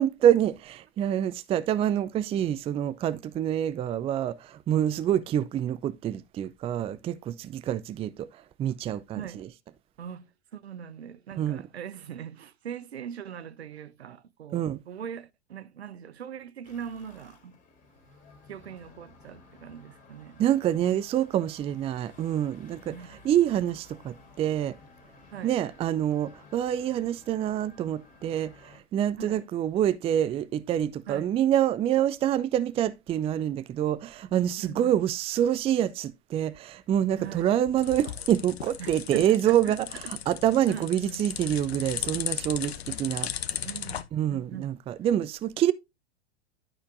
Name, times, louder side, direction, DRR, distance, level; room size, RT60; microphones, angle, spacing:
voice 1, 0.0-9.5 11.4-11.6 14.5-14.8 20.4-24.8 25.4-43.3 44.1-45.7, right 11 dB, 20° right, 0.5 m, -26 dB
voice 2, 10.0-17.6 18.5-20.4 22.9-23.1 25.3-25.5 29.2-29.5 31.1-31.3 34.6-35.0 37.2-37.5 38.8-40.1 40.7-41.2 43.6-44.8, right 8 dB, 70° right, 0.9 m, -41 dB
sound 1, 16.6-28.8, left 3 dB, 25° left, 3.2 m, -54 dB
sound 2, 37.3-44.0, left 9 dB, 65° left, 1.0 m, -36 dB
12.0 x 6.5 x 2.6 m
figure-of-eight pair, 90°, 33 cm